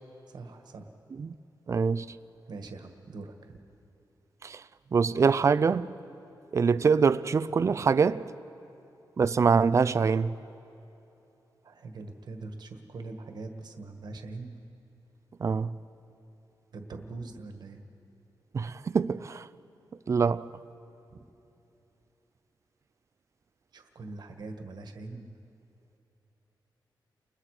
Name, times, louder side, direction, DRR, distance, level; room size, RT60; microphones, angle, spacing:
voice 1, 0.3-0.9 2.5-3.6 11.6-14.6 16.7-17.8 21.1-21.2 23.7-25.4, right 3 dB, 60° right, 1.6 m, -42 dB
voice 2, 1.7-2.2 4.4-4.6 4.9-5.9 6.5-8.3 9.2-10.3 15.4-15.7 18.5-19.5 20.1-20.5, right 5 dB, 40° right, 0.5 m, -24 dB
29.5 x 21.0 x 4.9 m
wide cardioid pair, 150°, 8 cm